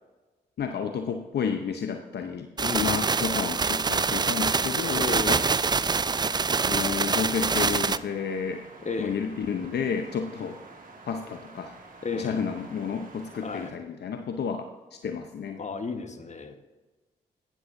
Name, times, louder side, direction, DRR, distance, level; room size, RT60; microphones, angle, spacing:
voice 1, 0.6-5.4 6.5-8.6 9.0-10.6 11.0-11.8 12.1-15.6, left 6 dB, 65° left, 6 dB, 0.7 m, -31 dB
voice 2, 2.6-3.0 5.0-5.5 8.8-9.2 12.0-12.4 13.4-13.7 15.6-16.6, left 4 dB, 40° left, 7 dB, 1.3 m, -33 dB
sound 1, 2.6-8.0, right 4 dB, 25° right, 0.4 m, -25 dB
sound 2, 3.0-13.7, right 3 dB, 45° right, 1.8 m, -48 dB
12.0 x 9.7 x 2.6 m, 1.2 s
supercardioid pair, 45°, 19 cm